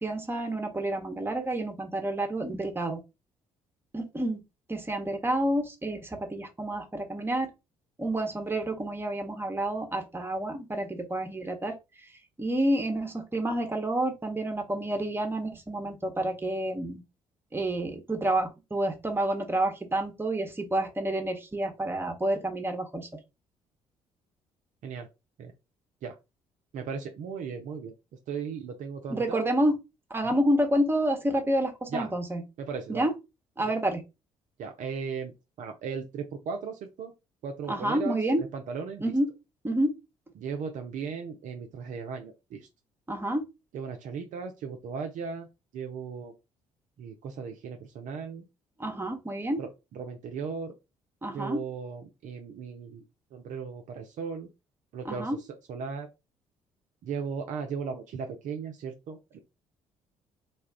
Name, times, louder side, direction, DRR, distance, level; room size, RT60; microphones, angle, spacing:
voice 1, 0.0-3.0 3.9-4.4 4.7-7.5 8.0-11.8 12.4-17.0 17.5-23.1 29.1-29.8 30.1-32.4 32.9-33.1 33.6-34.0 37.7-38.4 39.0-39.3 39.6-39.9 43.1-43.5 48.8-49.6 51.2-51.6 55.0-55.4, right 1 dB, 15° right, 4 dB, 0.9 m, -29 dB
voice 2, 26.7-27.9 28.3-29.6 30.3-30.4 31.9-32.1 32.6-33.0 33.6-33.7 34.6-37.1 37.4-39.1 40.4-42.7 43.7-45.5 45.7-46.3 47.0-48.5 49.6-50.7 51.3-53.0 53.3-54.5 54.9-56.1 57.0-59.4, right 5 dB, 50° right, 4 dB, 0.5 m, -37 dB
2.4 x 2.3 x 3.4 m, 0.25 s
figure-of-eight pair, 45°, 17 cm